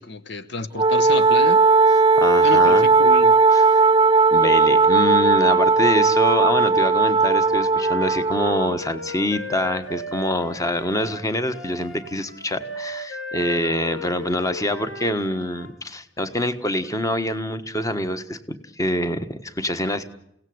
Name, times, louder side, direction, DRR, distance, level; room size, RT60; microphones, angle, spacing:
voice 1, 0.0-1.6 2.4-3.3, left 3 dB, 65° left, 11 dB, 1.0 m, -30 dB
Wind instrument woodwind instrument, 0.8-8.8, right 4 dB, 20° right, 0.8 m, -17 dB
voice 2, 2.2-2.9 3.5-3.9 4.3-20.0, left 1 dB, 20° left, 10 dB, 1.4 m, -25 dB
Wind instrument woodwind instrument 2, 7.2-15.7, left 1 dB, 85° left, 4.8 m, -36 dB
29.5 x 17.5 x 8.0 m, 0.77 s
head